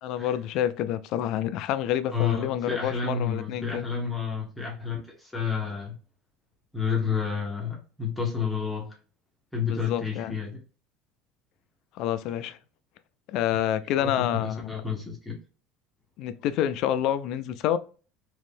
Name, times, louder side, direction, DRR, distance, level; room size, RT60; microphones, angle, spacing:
voice 1, 0.0-3.9 9.7-10.3 11.9-12.6 13.3-14.7 16.2-17.8, left 11 dB, 55° left, 0.3 m, -28 dB
voice 2, 2.1-5.9 6.7-8.9 9.5-10.6 14.0-15.3, left 6 dB, 5° left, 0.8 m, -30 dB
3.0 x 2.5 x 3.5 m
cardioid pair, 160°, 0 cm